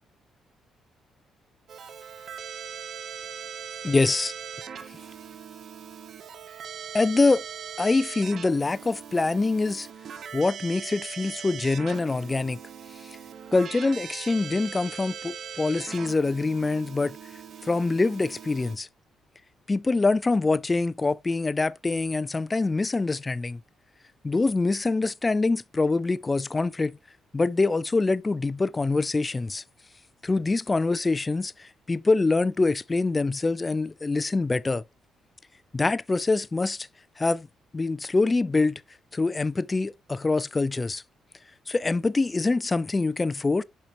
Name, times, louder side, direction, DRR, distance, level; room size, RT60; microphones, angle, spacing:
Keyboard (musical), 1.7-18.8, right 7 dB, 60° right, 1.1 m, -40 dB
voice 1, 3.8-4.3 6.9-7.4 7.8-9.9 10.3-12.6 13.0-13.2 13.5-17.2 17.6-18.9 19.7-23.6 24.2-27.0 27.3-29.6 30.2-34.8 35.7-36.9 37.2-37.5 37.7-38.8 39.1-41.0 41.7-43.6, left 3 dB, 25° left, 0.3 m, -25 dB
7.3 x 5.6 x 3.0 m
cardioid pair, 90°, 0 cm